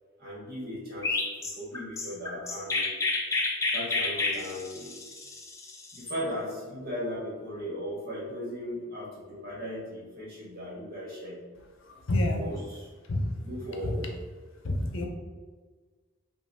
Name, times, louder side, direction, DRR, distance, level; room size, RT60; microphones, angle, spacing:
voice 1, 0.2-2.9 3.7-4.9 5.9-11.4 12.2-12.9 13.4-14.2, equal, 50° right, -6 dB, 1.5 m, -37 dB
Chirp tweet, 1.0-6.2, left 3 dB, 15° left, 0.4 m, -30 dB
voice 2, 11.9-12.6 13.1-13.3 13.8-14.0 14.6-15.1, left 1 dB, 75° left, 3 dB, 0.6 m, -28 dB
5.8 x 2.5 x 2.6 m, 1.4 s
head